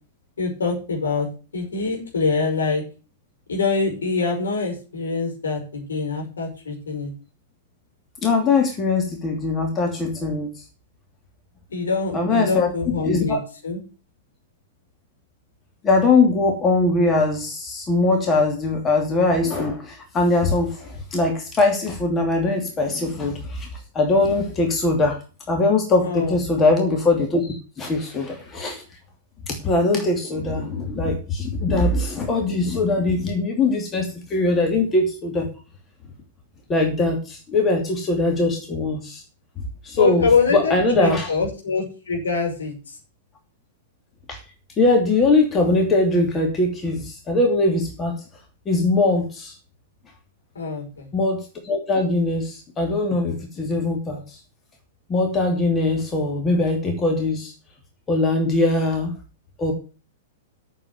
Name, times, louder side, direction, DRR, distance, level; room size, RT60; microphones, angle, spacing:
voice 1, 0.4-1.3 1.5-2.8 3.5-7.1 11.7-13.4 13.6-13.8 26.0-26.4 40.0-42.7 50.5-51.1, left 4 dB, 65° left, 1 dB, 5.5 m, -24 dB
voice 2, 8.2-10.5 12.1-12.7 13.0-13.4 15.8-23.7 23.9-25.2 25.5-28.8 29.5-35.5 36.7-39.2 39.8-41.3 44.3-44.4 44.8-48.2 48.7-49.5 51.1-54.4 55.1-57.5 58.1-59.1 59.6-59.7, left 2 dB, 20° left, 2 dB, 2.8 m, -21 dB
8.8 x 7.1 x 8.2 m, 0.35 s
figure-of-eight pair, 105°, 0 cm